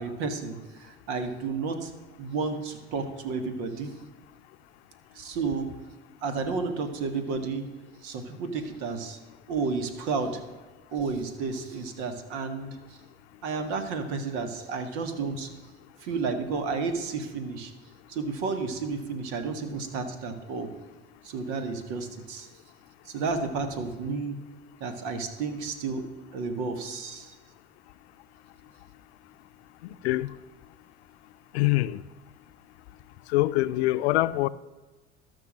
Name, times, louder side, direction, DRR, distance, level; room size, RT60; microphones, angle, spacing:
voice 1, 0.0-1.9 2.2-4.0 5.1-5.7 6.2-7.7 8.0-9.2 9.5-10.4 10.9-12.8 13.4-15.5 16.0-17.7 18.1-20.7 21.2-22.5 23.0-24.4 24.8-26.0 26.3-27.3, right 4 dB, 80° right, 1.7 m, -31 dB
voice 2, 31.5-32.0 33.3-34.5, left 18 dB, 90° left, 0.5 m, -24 dB
13.0 x 6.1 x 7.4 m
supercardioid pair, 80°, 32 cm